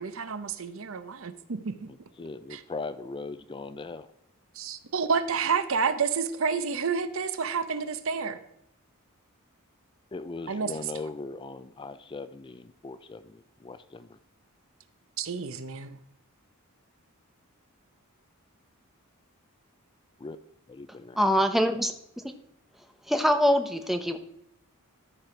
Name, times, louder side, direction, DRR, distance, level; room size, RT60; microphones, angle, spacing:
voice 1, 0.0-1.9 2.5-2.6 4.6-8.4 10.5-10.8 15.2-16.0, right 5 dB, 65° right, 12 dB, 0.8 m, -29 dB
voice 2, 1.9-4.1 10.1-14.2 20.2-20.4 20.7-21.2, left 3 dB, 20° left, 13 dB, 0.4 m, -39 dB
voice 3, 21.2-21.9 23.1-24.2, equal, ahead, 6 dB, 0.8 m, -23 dB
13.5 x 4.9 x 5.9 m, 0.76 s
head